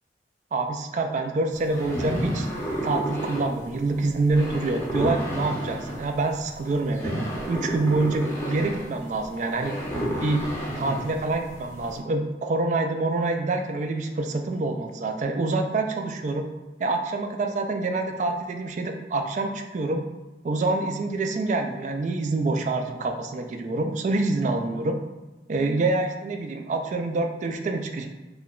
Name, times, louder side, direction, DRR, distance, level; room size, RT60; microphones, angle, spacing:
voice 1, 0.5-2.5 2.8-7.1 7.5-9.8 10.2-10.5 10.7-16.5 16.8-20.0 20.4-25.0 25.5-28.1, right 2 dB, 40° right, 5 dB, 0.3 m, -26 dB
sound 1, 1.5-12.0, right 1 dB, 15° left, 0.6 m, -31 dB
2.9 x 2.2 x 3.6 m, 1.2 s
head